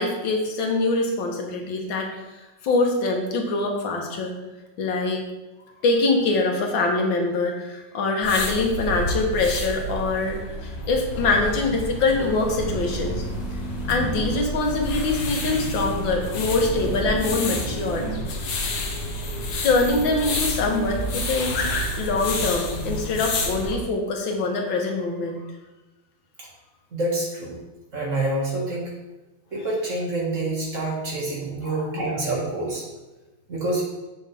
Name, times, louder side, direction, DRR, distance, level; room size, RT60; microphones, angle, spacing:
voice 1, 0.0-2.1 2.6-4.4 4.8-5.2 5.8-13.2 13.9-18.0 19.6-21.6 22.0-25.4 31.6-31.9, left 3 dB, 85° left, 1 dB, 2.0 m, -24 dB
sound 1, 8.2-23.7, left 1 dB, 65° left, 1.5 m, -29 dB
sound 2, 11.1-17.1, right 1 dB, ahead, 0.6 m, -39 dB
sound 3, 12.6-18.2, right 4 dB, 80° right, 2.9 m, -36 dB
voice 2, 26.9-27.6 27.9-28.9 29.5-32.9 33.5-33.8, right 2 dB, 40° right, -3 dB, 2.1 m, -27 dB
7.4 x 6.4 x 3.4 m, 1.1 s
omnidirectional pair, 2.0 m